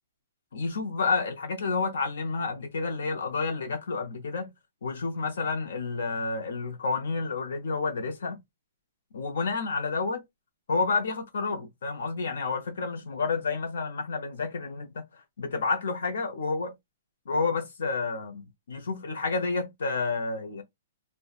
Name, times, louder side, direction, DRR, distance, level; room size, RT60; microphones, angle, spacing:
voice 1, 0.5-4.5 4.8-8.4 9.1-10.2 10.7-16.7 17.3-20.6, left 4 dB, 70° left, 0.6 m, -30 dB
2.6 x 2.1 x 2.3 m
hypercardioid pair, 175°, 0 cm